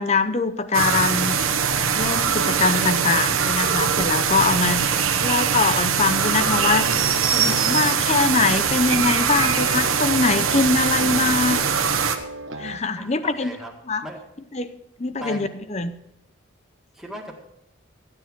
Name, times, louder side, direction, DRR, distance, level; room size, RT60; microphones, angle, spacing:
voice 1, 0.0-1.4 2.0-4.8 5.2-6.9 7.3-11.6 12.6-13.5 13.9-14.0 14.5-14.7 15.0-15.9, left 4 dB, 30° left, 12 dB, 0.7 m, -22 dB
sound 1, 0.7-12.2, right 7 dB, 85° right, 1.1 m, -22 dB
voice 2, 4.7-5.2 13.0-13.7 14.0-14.2 15.2-15.5 16.9-17.4, equal, ahead, -2 dB, 1.9 m, -38 dB
sound 2, 6.4-12.8, right 2 dB, 65° right, 0.9 m, -34 dB
14.5 x 9.7 x 4.6 m, 0.85 s
head